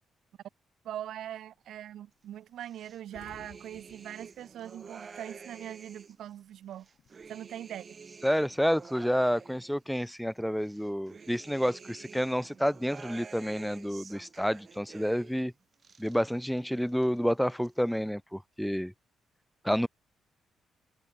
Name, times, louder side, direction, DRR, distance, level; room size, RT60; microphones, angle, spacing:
voice 1, 0.8-6.9 7.3-7.9, right 11 dB, 75° right, 1.1 m, -42 dB
sound 1, 1.0-1.4 1.8-1.9 2.2-2.3 2.6-5.6 5.9-7.6, left 9 dB, 65° left, 6.3 m, -59 dB
sound 2, 2.6-6.3 6.7-10.2 10.6-15.5 15.7-16.6 16.9-17.7, right 5 dB, 40° right, 2.9 m, -50 dB
voice 2, 8.2-15.5 16.0-18.9 19.6-19.9, equal, ahead, 0.4 m, -29 dB
cardioid pair, 90°, 0 cm